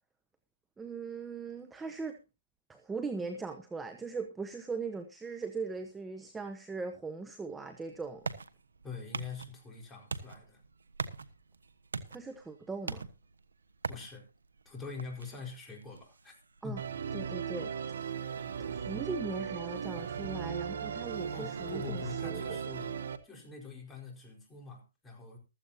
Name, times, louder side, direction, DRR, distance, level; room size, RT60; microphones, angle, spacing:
voice 1, 0.8-2.2 2.7-8.3 12.1-13.1 16.6-16.8 17.1-17.7 18.0-22.6, right 4 dB, 10° right, 1.0 m, -40 dB
sound 1, 7.5-19.0, right 4 dB, 80° right, 1.2 m, -45 dB
voice 2, 8.8-10.6 13.9-14.3 14.6-16.3 16.6-16.9 17.3-17.4 21.3-23.0 23.2-25.4, left 4 dB, 10° left, 4.7 m, -44 dB
Musical instrument, 16.8-23.2, right 7 dB, 65° right, 1.3 m, -37 dB
15.0 x 13.5 x 2.8 m
hypercardioid pair, 140°, 0 cm